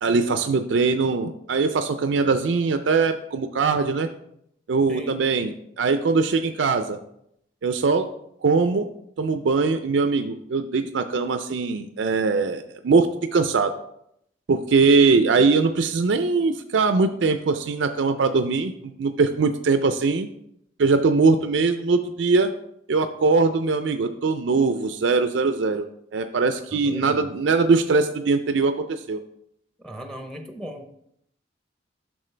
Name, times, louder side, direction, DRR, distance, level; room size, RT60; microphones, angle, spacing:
voice 1, 0.0-4.1 4.7-7.0 7.6-8.1 8.4-8.9 9.2-13.7 14.5-20.3 20.8-22.5 22.9-25.9 26.1-29.2, right 4 dB, 85° right, 8 dB, 0.4 m, -21 dB
voice 2, 4.9-5.2 26.7-27.3 29.8-30.9, equal, 5° left, 5 dB, 0.7 m, -38 dB
8.9 x 6.2 x 3.3 m, 0.74 s
head